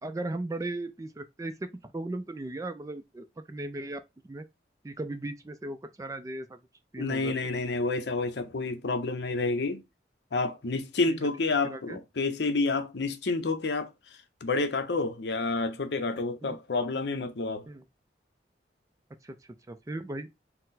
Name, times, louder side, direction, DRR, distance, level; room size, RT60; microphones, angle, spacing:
voice 1, 0.0-1.5 1.8-4.5 4.8-6.6 6.9-7.3 11.6-12.0 16.4-16.6 17.7-17.8 19.2-20.3, right 2 dB, 20° right, 0.3 m, -37 dB
voice 2, 7.0-9.8 10.3-13.9 14.4-17.7, left 3 dB, 75° left, 0.7 m, -29 dB
4.2 x 2.1 x 4.0 m
head